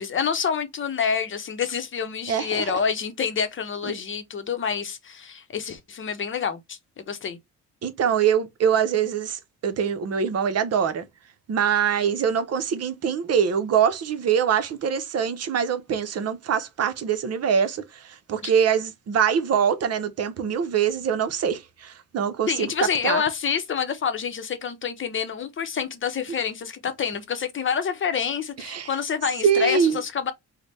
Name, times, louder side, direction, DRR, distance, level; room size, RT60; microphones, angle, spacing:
voice 1, 0.0-7.4 18.4-18.5 22.5-30.3, left 7 dB, 40° left, 0.7 m, -27 dB
voice 2, 2.3-2.8 3.8-3.9 7.8-11.1 11.5-23.2 28.6-28.9 29.4-30.0, right 7 dB, 55° right, 0.7 m, -24 dB
3.3 x 2.1 x 4.1 m
cardioid pair, 90°, 30 cm